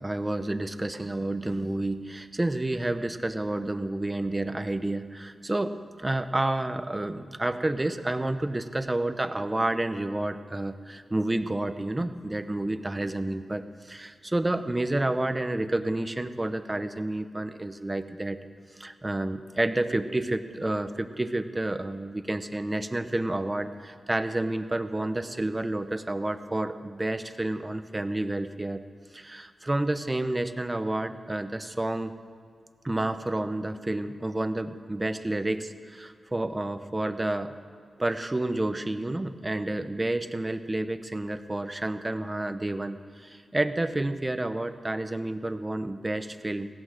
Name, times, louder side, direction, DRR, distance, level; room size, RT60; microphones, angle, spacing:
voice 1, 0.0-18.4 18.8-28.8 29.1-32.1 32.8-37.5 38.0-46.7, right 1 dB, 20° right, 10 dB, 0.7 m, -30 dB
16.5 x 9.6 x 6.6 m, 2.1 s
cardioid pair, 70°, 0 cm